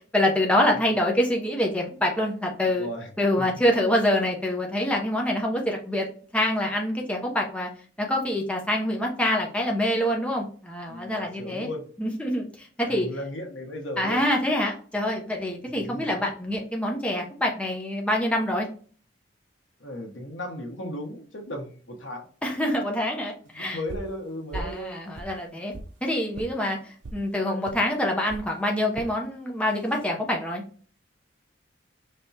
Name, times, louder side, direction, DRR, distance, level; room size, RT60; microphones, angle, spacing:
voice 1, 0.1-2.9 3.2-6.1 6.3-7.7 8.0-11.7 12.0-13.1 14.0-18.7 22.4-23.8 24.5-25.7 26.0-30.6, left 1 dB, 5° left, 0 dB, 0.7 m, -26 dB
voice 2, 2.7-3.1 3.4-3.5 10.9-11.9 12.8-14.2 15.8-16.2 19.8-22.3 23.5-25.0, left 1 dB, 80° left, 2 dB, 1.2 m, -36 dB
sound 1, 23.9-24.2 24.5-24.8 25.1-25.9 26.3-26.5 27.0-27.2 27.7-27.8 28.3-28.5 28.9-29.1 29.7-30.1, right 2 dB, 70° right, 0.6 m, -38 dB
5.2 x 3.4 x 2.8 m, 0.42 s
head